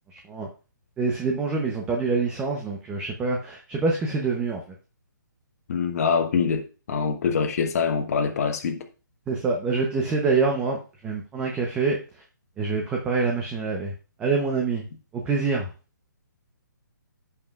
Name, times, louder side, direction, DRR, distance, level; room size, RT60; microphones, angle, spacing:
voice 1, 0.1-0.5 1.0-4.6 9.3-12.2 12.6-13.9 14.2-14.8 15.1-15.7, right 4 dB, 10° right, 0.8 m, -26 dB
voice 2, 5.7-8.8, left 6 dB, 45° left, 1.3 m, -24 dB
15.0 x 5.3 x 2.4 m
hypercardioid pair, 160°, 11 cm